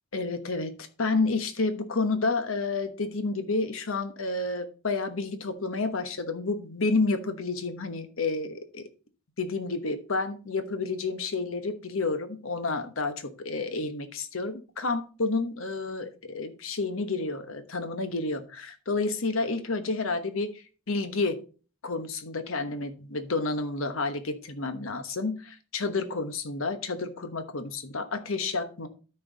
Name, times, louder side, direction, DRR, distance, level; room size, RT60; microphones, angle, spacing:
voice 1, 0.1-8.8 9.4-20.5 20.9-21.4 21.8-28.9, left 3 dB, 85° left, 10 dB, 1.1 m, -30 dB
12.5 x 4.6 x 3.9 m, 0.36 s
head